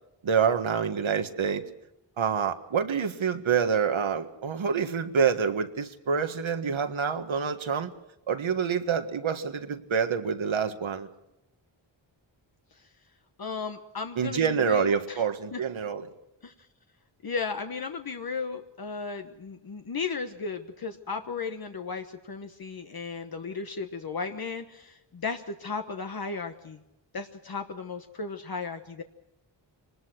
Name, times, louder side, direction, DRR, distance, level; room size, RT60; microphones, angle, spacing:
voice 1, 0.2-1.6 2.2-7.9 8.3-11.1 14.2-16.1, right 6 dB, 80° right, 8 dB, 1.7 m, -27 dB
voice 2, 13.4-15.2 15.5-15.6 16.4-16.5 17.2-26.8 27.1-29.0, left 4 dB, 50° left, 6 dB, 1.2 m, -35 dB
25.5 x 20.0 x 6.2 m, 0.89 s
wide cardioid pair, 145°, 47 cm